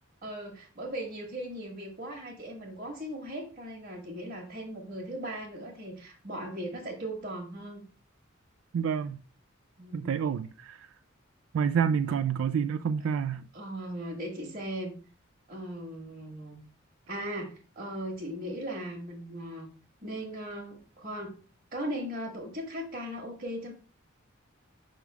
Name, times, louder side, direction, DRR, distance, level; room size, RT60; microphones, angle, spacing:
voice 1, 0.2-7.8 9.8-10.2 13.5-14.9 15.5-16.6 17.1-19.7 20.0-21.4 21.7-23.7, right 1 dB, 45° right, 1.6 m, -38 dB
voice 2, 8.7-9.2 9.9-10.9 11.5-13.5, right 7 dB, 80° right, 0.3 m, -28 dB
5.9 x 3.7 x 4.7 m
head